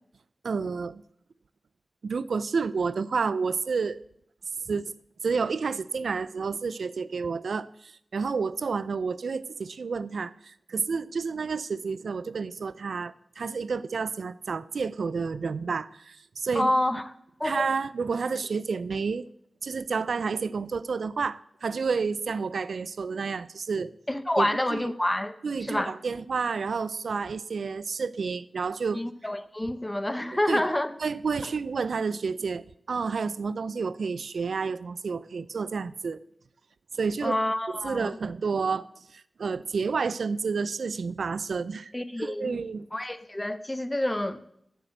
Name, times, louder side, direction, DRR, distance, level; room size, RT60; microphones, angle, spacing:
voice 1, 0.4-1.0 2.0-4.0 4.7-4.9 5.2-16.7 17.4-19.3 19.6-23.9 24.4-24.9 25.4-29.0 30.5-30.6 31.0-36.2 36.9-37.4 37.8-41.9 42.2-42.9, right 5 dB, 80° right, 0.3 m, -30 dB
voice 2, 16.5-17.0 17.4-17.7 24.1-25.3 25.6-25.9 28.9-30.9 37.2-38.2 41.9-42.6 42.9-44.4, left 1 dB, 15° left, 0.7 m, -28 dB
7.5 x 6.7 x 7.9 m
wide cardioid pair, 75°, 0 cm